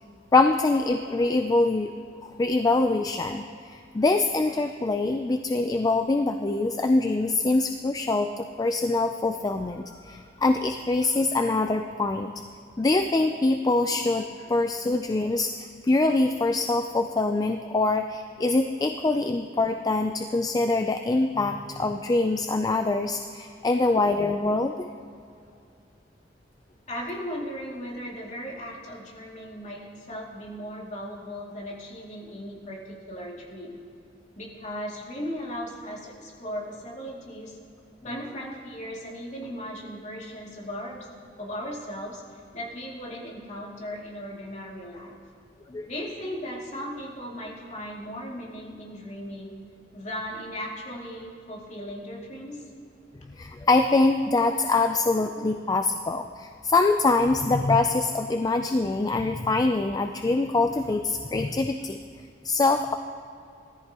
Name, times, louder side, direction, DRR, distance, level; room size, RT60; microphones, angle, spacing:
voice 1, 0.3-1.9 2.2-12.3 12.8-24.9 45.7-45.9 53.3-62.0 62.4-62.9, left 3 dB, 20° left, 6 dB, 0.4 m, -24 dB
voice 2, 26.9-33.8 34.4-37.6 38.0-41.1 41.4-42.2 42.5-45.1 45.9-49.5 49.9-52.7, equal, 40° left, -4 dB, 2.5 m, -37 dB
19.5 x 14.0 x 2.9 m, 2.4 s
head